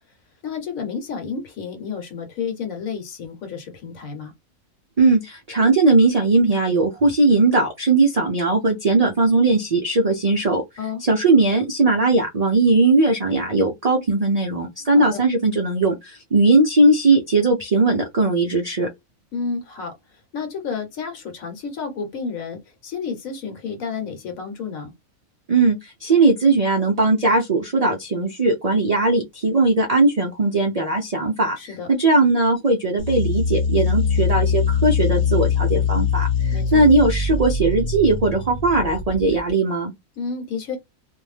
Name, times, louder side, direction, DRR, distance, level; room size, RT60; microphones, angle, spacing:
voice 1, 0.4-4.3 10.8-11.0 14.9-15.2 19.3-24.9 31.6-31.9 36.5-36.8 40.2-40.8, left 5 dB, 75° left, 1.2 m, -31 dB
voice 2, 5.0-10.6 11.0-18.9 25.5-39.9, right 3 dB, 85° right, 0.3 m, -19 dB
sound 1, 33.0-39.5, left 5 dB, 60° left, 1.0 m, -22 dB
2.5 x 2.1 x 3.2 m
omnidirectional pair, 1.4 m